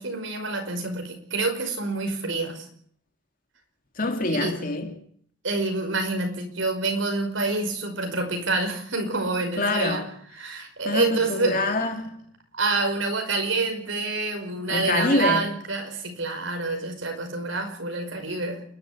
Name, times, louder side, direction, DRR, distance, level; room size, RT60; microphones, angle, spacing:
voice 1, 0.0-2.7 4.3-4.5 5.4-10.0 10.4-11.8 12.5-18.6, right 3 dB, 80° right, 5.4 m, -27 dB
voice 2, 4.0-5.0 9.6-10.1 10.8-12.2 14.7-15.5, left 2 dB, 45° left, 2.9 m, -25 dB
28.5 x 11.5 x 8.7 m
head